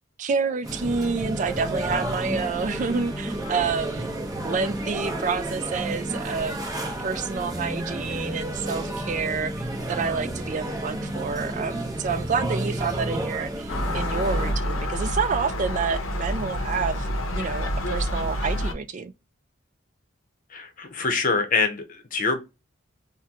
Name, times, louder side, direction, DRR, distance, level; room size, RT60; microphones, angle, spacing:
voice 1, 0.2-4.1 4.4-19.1, right 5 dB, 40° right, 0.3 m, -28 dB
sound 1, 0.6-14.5, right 1 dB, 20° right, 0.7 m, -31 dB
Gull seagull, 13.7-18.7, equal, 90° left, 0.6 m, -28 dB
voice 2, 20.5-22.4, left 4 dB, 40° left, 0.7 m, -25 dB
3.7 x 2.1 x 2.8 m
head